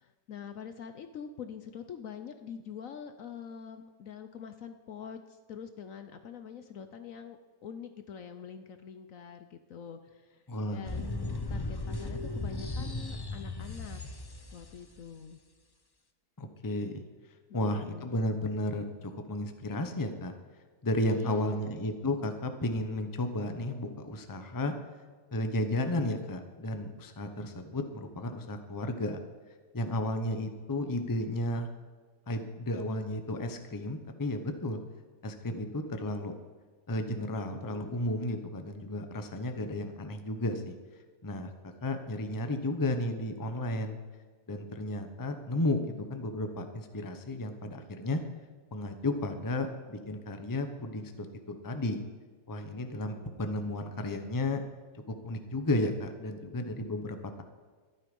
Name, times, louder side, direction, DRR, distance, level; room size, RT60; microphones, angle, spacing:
voice 1, 0.0-10.4 10.7-14.0 14.5-15.4 17.5-18.2 21.2-21.8 53.0-53.4, left 7 dB, 60° left, 8 dB, 1.0 m, -45 dB
voice 2, 10.5-10.9 16.4-17.0 17.5-20.3 20.8-24.7 25.3-29.2 29.7-31.7 32.3-34.8 35.2-36.3 36.9-40.7 41.2-41.5 41.8-44.0 44.5-45.8 46.1-48.2 48.7-52.0 52.5-54.6 55.2-57.4, left 1 dB, 15° left, 7 dB, 0.7 m, -33 dB
sound 1, 10.9-14.8, left 2 dB, 35° left, 0.4 m, -36 dB
13.5 x 11.5 x 5.4 m, 1.4 s
omnidirectional pair, 1.7 m